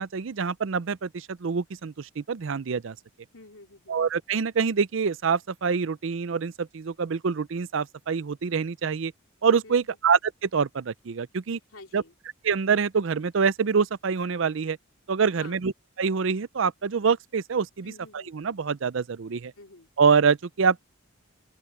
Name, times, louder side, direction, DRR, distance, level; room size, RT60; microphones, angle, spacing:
voice 1, 0.0-3.0 3.9-9.1 9.4-11.6 11.9-12.0 12.4-14.8 15.1-15.7 16.0-17.9 18.3-19.5 20.0-20.9, right 5 dB, 65° right, 0.5 m, -25 dB
voice 2, 3.3-4.0 9.6-10.0 11.7-12.2 15.3-15.6 17.8-18.3 19.6-19.9, left 3 dB, 85° left, 3.3 m, -49 dB
open air
head